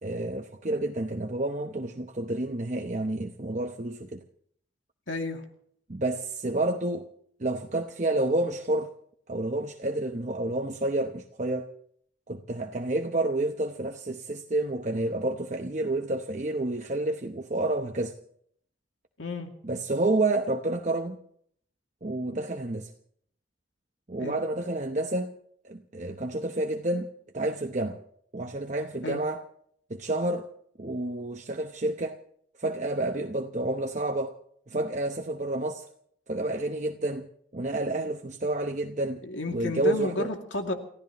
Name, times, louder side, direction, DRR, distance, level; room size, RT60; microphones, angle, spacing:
voice 1, 0.0-4.2 5.9-7.1 7.4-8.9 9.3-11.7 12.3-18.1 19.6-21.2 22.0-22.9 24.1-25.3 25.6-27.1 27.3-28.0 28.3-29.4 29.9-30.5 30.8-32.2 32.6-34.3 34.7-35.8 36.3-37.3 37.5-39.2 39.5-40.3, right 2 dB, 40° right, 0.9 m, -29 dB
voice 2, 5.1-5.4 19.2-19.5 24.2-24.4 29.0-29.2 39.2-40.7, left 2 dB, 85° left, 2.4 m, -32 dB
30.0 x 15.0 x 3.0 m
head